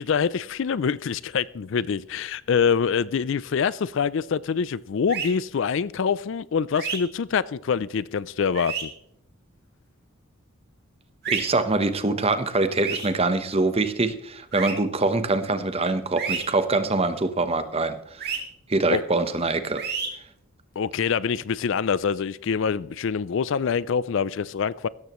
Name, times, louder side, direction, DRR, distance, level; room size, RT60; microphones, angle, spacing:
voice 1, 0.0-8.9 18.9-19.0 20.8-24.9, left 6 dB, 60° left, 0.4 m, -25 dB
sound 1, 5.1-5.3 6.7-7.0 8.5-8.8 11.2-11.4 12.8-13.1 14.5-14.7 16.2-16.4 18.2-18.4 19.8-20.1, right 6 dB, 50° right, 2.6 m, -29 dB
voice 2, 11.3-18.2 18.7-19.8, right 3 dB, 25° right, 0.9 m, -24 dB
16.5 x 13.5 x 3.1 m
head